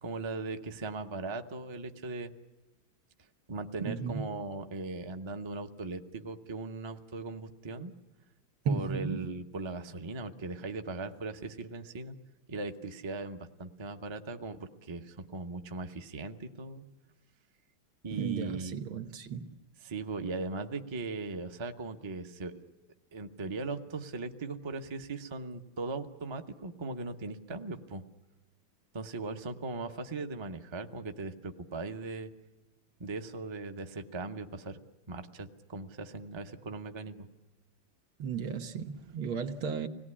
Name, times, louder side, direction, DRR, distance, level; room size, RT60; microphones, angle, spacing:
voice 1, 0.0-2.3 3.5-7.9 8.6-12.2 12.5-16.8 18.0-18.8 19.8-22.5 23.1-28.0 28.9-32.3 33.0-34.8 35.1-37.3, right 3 dB, 25° right, 6 dB, 0.6 m, -39 dB
voice 2, 3.8-4.4 8.7-9.3 18.1-19.4 38.2-39.9, right 6 dB, 85° right, 7 dB, 2.1 m, -34 dB
25.5 x 18.5 x 9.9 m, 1.1 s
omnidirectional pair, 2.2 m